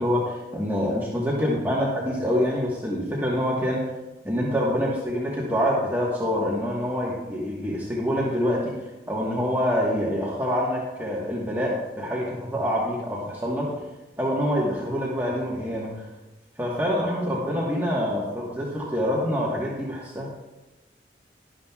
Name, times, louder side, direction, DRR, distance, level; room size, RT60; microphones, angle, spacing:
voice 1, 0.0-3.8 4.2-8.7 9.1-13.7 14.2-16.1 16.6-20.3, equal, 10° right, -5 dB, 1.3 m, -26 dB
11.5 x 11.0 x 2.3 m, 1.1 s
head